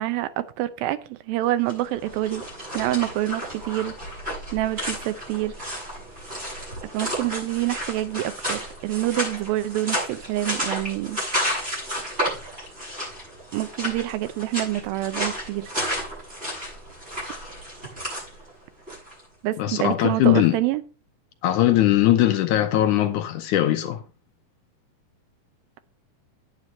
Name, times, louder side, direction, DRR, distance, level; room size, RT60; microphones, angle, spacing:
voice 1, 0.0-2.4 2.7-3.9 4.5-5.5 6.9-11.2 13.5-15.7 19.4-20.8, right 15 dB, 85° right, 2.5 m, -26 dB
sound 1, 1.6-19.2, equal, 15° right, 7.6 m, -32 dB
voice 2, 19.6-20.6 21.4-24.0, left 13 dB, 75° left, 2.0 m, -20 dB
9.5 x 9.2 x 4.2 m
omnidirectional pair, 4.1 m